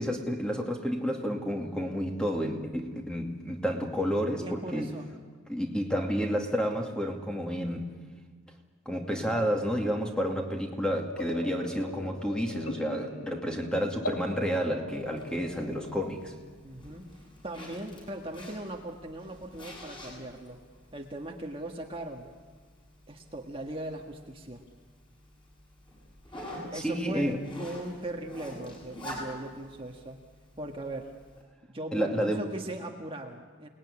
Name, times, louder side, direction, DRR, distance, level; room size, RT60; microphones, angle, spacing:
voice 1, 0.0-4.9 5.5-7.9 8.9-16.3 26.7-27.4 31.9-32.5, equal, 5° left, 2.4 m, -30 dB
voice 2, 4.4-5.1 13.2-13.5 16.6-17.1 17.4-20.6 20.9-22.3 23.1-24.6 26.7-30.2 30.6-31.1 31.7-33.7, right 1 dB, 25° right, 1.7 m, -39 dB
sound 1, 11.1-16.1, left 1 dB, 85° left, 2.6 m, -40 dB
Zipper (clothing), 14.9-31.4, equal, 20° left, 7.7 m, -48 dB
29.0 x 20.0 x 9.9 m
head